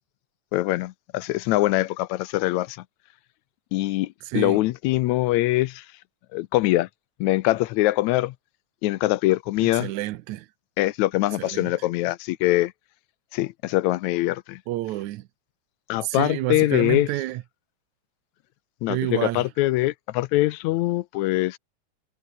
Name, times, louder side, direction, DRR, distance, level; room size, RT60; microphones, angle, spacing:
voice 1, 0.5-2.8 3.7-5.8 6.3-6.9 7.2-8.3 8.8-9.9 10.8-12.7 13.3-14.6 15.9-17.1 18.8-21.6, left 17 dB, 80° left, 1.9 m, -23 dB
voice 2, 4.3-4.6 9.6-10.5 11.4-11.7 14.7-15.3 16.0-17.4 18.9-19.5, right 16 dB, 80° right, 2.1 m, -29 dB
omnidirectional pair, 3.4 m